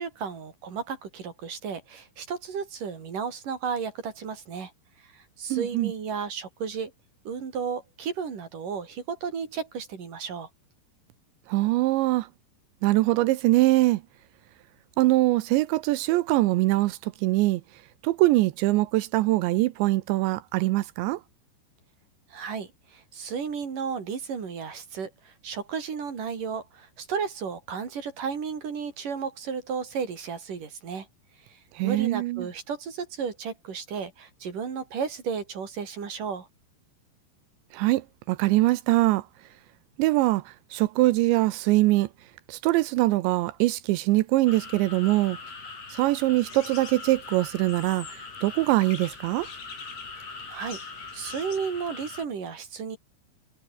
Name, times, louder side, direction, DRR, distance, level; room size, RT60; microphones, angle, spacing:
voice 1, 0.0-4.7 5.1-6.9 7.2-10.5 22.3-31.1 31.5-36.5 50.5-53.0, right 6 dB, 45° right, 4.8 m, -33 dB
voice 2, 5.5-5.9 11.5-12.3 12.8-14.0 15.0-17.6 18.0-21.2 31.7-32.5 37.7-39.3 40.0-42.1 42.5-45.4 45.9-49.5, right 18 dB, 80° right, 3.0 m, -23 dB
sound 1, 44.5-52.3, left 4 dB, 35° left, 5.9 m, -42 dB
sound 2, 46.4-51.6, left 6 dB, 80° left, 7.8 m, -47 dB
omnidirectional pair, 5.4 m